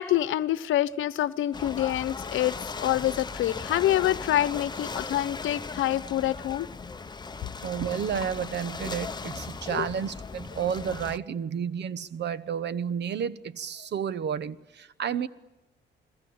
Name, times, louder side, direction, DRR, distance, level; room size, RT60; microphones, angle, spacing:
voice 1, 0.0-6.7 9.7-9.9, left 13 dB, 80° left, 1.0 m, -26 dB
Ocean / Boat Water vehicle, 1.5-11.2, left 4 dB, 20° left, 0.9 m, -37 dB
voice 2, 7.6-15.3, right 8 dB, 60° right, 1.2 m, -31 dB
30.0 x 21.5 x 8.9 m
cardioid pair, 90°, 20 cm